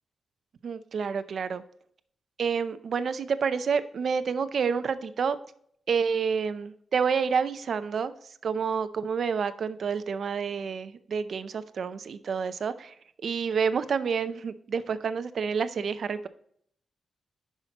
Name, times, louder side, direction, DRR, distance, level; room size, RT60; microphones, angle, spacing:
voice 1, 0.6-1.6 2.4-5.4 5.9-8.1 8.4-12.9 13.2-16.3, right 6 dB, 55° right, 12 dB, 0.5 m, -29 dB
10.0 x 5.7 x 2.9 m, 0.65 s
wide cardioid pair, 150°, 0 cm